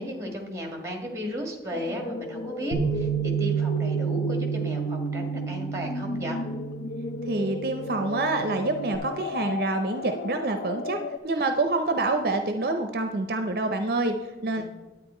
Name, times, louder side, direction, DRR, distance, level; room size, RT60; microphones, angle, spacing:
voice 1, 0.0-6.4 14.5-14.6, equal, 15° right, 2 dB, 1.7 m, -35 dB
sound 1, 1.7-11.2, left 3 dB, 65° left, 0.6 m, -34 dB
Bass guitar, 2.7-9.0, right 8 dB, 45° left, 1.5 m, -30 dB
voice 2, 7.3-11.0 11.2-14.6, right 2 dB, 55° right, 6 dB, 0.6 m, -27 dB
10.0 x 8.8 x 4.3 m, 1.2 s
head